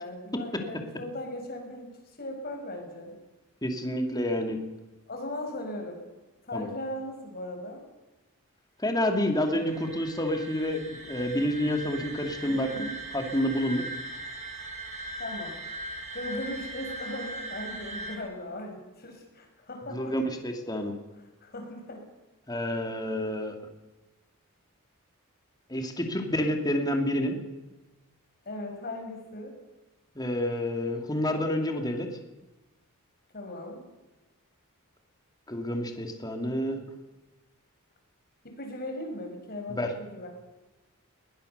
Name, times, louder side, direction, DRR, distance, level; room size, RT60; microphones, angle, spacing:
voice 1, 0.0-3.2 5.1-6.1 6.5-7.8 12.4-12.9 15.2-15.6 16.1-20.1 21.4-22.0 28.5-29.5 33.3-33.8 38.4-40.3, left 1 dB, 45° left, 3 dB, 5.6 m, -38 dB
voice 2, 3.6-4.6 6.5-6.7 8.8-13.8 19.9-20.9 22.5-23.5 25.7-27.4 30.1-32.1 35.5-36.8 39.7-39.9, left 1 dB, 20° left, 4 dB, 2.7 m, -29 dB
sound 1, 9.0-18.2, right 1 dB, 35° right, 4.8 m, -39 dB
21.5 x 18.5 x 6.8 m, 1.1 s
head